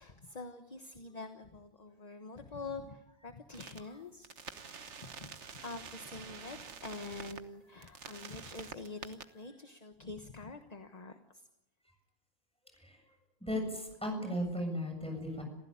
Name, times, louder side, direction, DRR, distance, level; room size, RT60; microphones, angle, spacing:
voice 1, 0.0-4.4 5.0-11.4, left 3 dB, 35° left, 7 dB, 1.3 m, -46 dB
sound 1, 3.5-3.8 4.2-7.4 7.8-9.2, right 6 dB, 85° right, 1.5 m, -47 dB
voice 2, 13.4-15.4, equal, 5° left, 2 dB, 7.4 m, -36 dB
28.0 x 15.5 x 8.8 m, 0.91 s
omnidirectional pair, 1.2 m